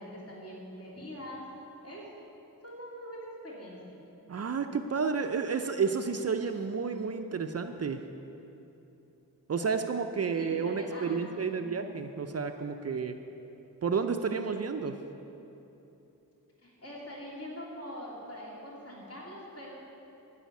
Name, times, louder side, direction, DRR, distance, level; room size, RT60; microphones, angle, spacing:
voice 1, 0.0-1.4 1.8-2.0 2.6-3.9 10.3-11.7 16.6-19.7, equal, 45° left, -6 dB, 3.1 m, -43 dB
voice 2, 4.3-8.0 9.5-13.2 13.8-15.0, right 5 dB, 45° right, 6 dB, 0.5 m, -31 dB
12.5 x 5.6 x 9.2 m, 2.9 s
wide cardioid pair, 160°, 35 cm